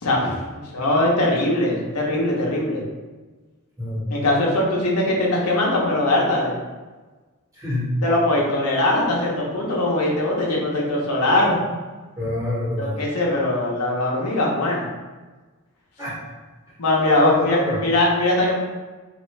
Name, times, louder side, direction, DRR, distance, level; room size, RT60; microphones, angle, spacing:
voice 1, 0.0-2.8 4.1-6.5 8.0-11.6 12.8-14.9 16.8-18.5, left 1 dB, 85° left, -3 dB, 0.8 m, -21 dB
voice 2, 7.5-7.9 12.2-13.0 16.0-16.2 17.1-17.8, left 1 dB, 15° right, -8 dB, 1.1 m, -26 dB
3.5 x 2.5 x 3.2 m, 1.3 s
head